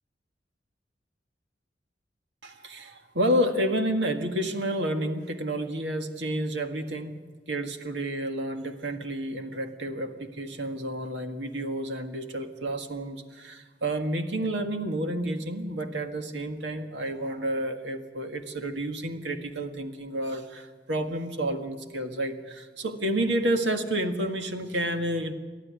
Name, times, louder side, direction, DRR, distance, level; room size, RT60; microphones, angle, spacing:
voice 1, 2.4-7.2 7.5-25.3, right 1 dB, 80° right, 6 dB, 1.8 m, -30 dB
29.5 x 12.5 x 9.7 m, 1.4 s
head